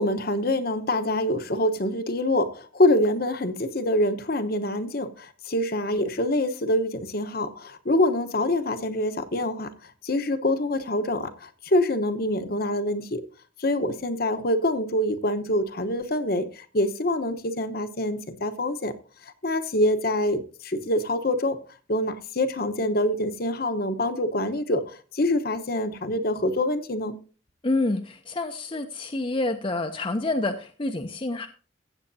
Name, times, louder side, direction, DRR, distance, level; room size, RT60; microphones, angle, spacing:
voice 1, 0.0-13.2 13.6-18.9 19.2-21.6 21.9-27.2, left 1 dB, 50° left, 1.0 m, -25 dB
voice 2, 27.6-31.5, left 2 dB, 25° left, 0.6 m, -28 dB
15.5 x 8.2 x 2.7 m
head